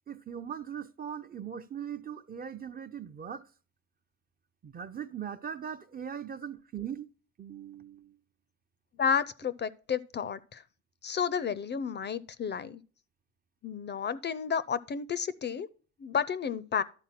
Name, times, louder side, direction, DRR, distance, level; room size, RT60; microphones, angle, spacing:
voice 1, 0.1-3.5 4.6-7.1 7.4-8.2, right 8 dB, 30° right, 0.5 m, -40 dB
voice 2, 9.0-10.6 11.0-12.8 13.6-15.7 16.0-16.8, left 7 dB, 35° left, 0.4 m, -31 dB
11.5 x 4.0 x 5.7 m
cardioid pair, 90°, 30 cm